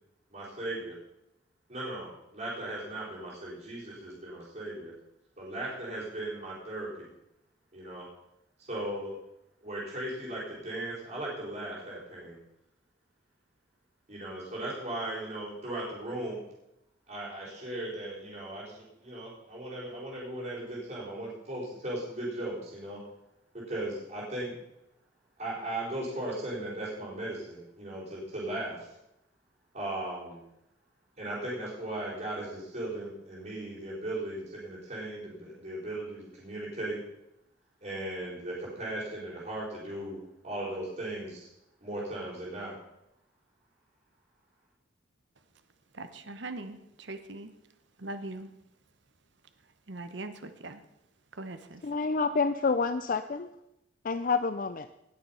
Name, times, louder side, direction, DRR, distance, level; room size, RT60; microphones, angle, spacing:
voice 1, 0.3-1.0 1.7-4.9 5.4-7.1 7.7-8.1 8.6-9.2 9.6-12.4 14.1-16.4 17.1-23.0 23.5-24.5 25.4-28.9 29.7-30.4 31.2-37.0 37.8-40.2 40.4-41.5 41.8-42.8, right 1 dB, 40° right, -9 dB, 4.6 m, -37 dB
voice 2, 45.9-47.5 48.0-48.5 49.9-50.8 51.3-51.8, right 2 dB, 60° right, 9 dB, 1.0 m, -41 dB
voice 3, 51.8-53.5 54.0-54.9, left 4 dB, 45° left, 11 dB, 0.4 m, -28 dB
19.0 x 6.9 x 5.6 m, 0.86 s
head